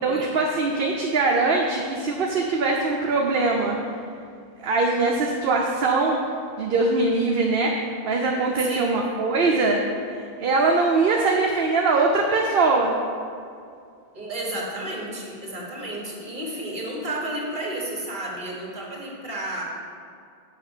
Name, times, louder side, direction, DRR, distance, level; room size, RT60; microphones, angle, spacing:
voice 1, 0.0-3.8 4.6-6.2 6.6-9.8 10.1-13.0, right 3 dB, 65° right, 0 dB, 0.9 m, -22 dB
voice 2, 8.6-9.0 14.1-19.6, right 1 dB, 50° right, -2 dB, 1.8 m, -32 dB
6.8 x 5.7 x 7.2 m, 2.3 s
omnidirectional pair, 1.0 m